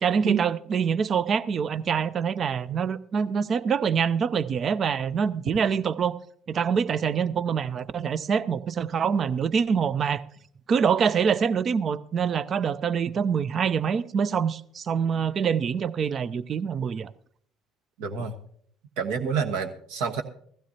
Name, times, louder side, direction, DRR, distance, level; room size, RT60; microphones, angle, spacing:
voice 1, 0.0-6.1 6.5-10.2 10.7-17.1, right 6 dB, 40° right, 17 dB, 0.5 m, -25 dB
voice 2, 18.0-18.3 19.0-20.2, right 6 dB, 65° right, 7 dB, 1.2 m, -27 dB
15.5 x 15.5 x 2.8 m, 0.62 s
figure-of-eight pair, 60°, 0 cm